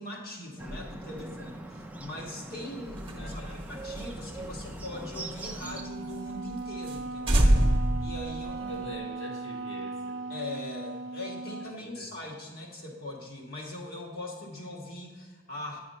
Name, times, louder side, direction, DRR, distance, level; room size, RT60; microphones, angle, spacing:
voice 1, 0.0-3.4 3.7-7.6 8.0-8.8 10.3-15.8, left 1 dB, 50° left, -1 dB, 1.7 m, -41 dB
Bird, 0.6-5.8, right 2 dB, 5° right, 0.5 m, -42 dB
sound 1, 2.9-5.8 6.1-6.2 6.5-6.6 6.9-7.0 7.3-9.0, right 1 dB, 25° right, 1.1 m, -26 dB
voice 2, 3.2-3.6 8.7-10.2 11.8-12.1, equal, 65° left, -1 dB, 1.8 m, -43 dB
Wind instrument woodwind instrument, 5.6-11.8, right 3 dB, 65° right, 0.4 m, -38 dB
9.5 x 4.9 x 5.5 m, 1.5 s
head